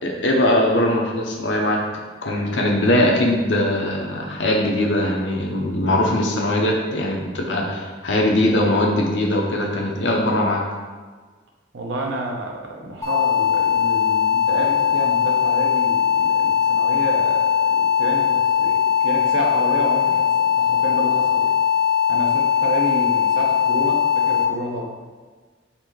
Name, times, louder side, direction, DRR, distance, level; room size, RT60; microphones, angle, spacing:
voice 1, 0.0-1.8 2.2-10.6, left 1 dB, 75° left, 0 dB, 0.8 m, -21 dB
voice 2, 11.7-21.5 22.1-25.0, right 1 dB, 90° right, 0 dB, 0.8 m, -30 dB
sound 1, 13.0-24.4, left 8 dB, 15° left, 0.6 m, -19 dB
4.0 x 2.7 x 4.7 m, 1.4 s
head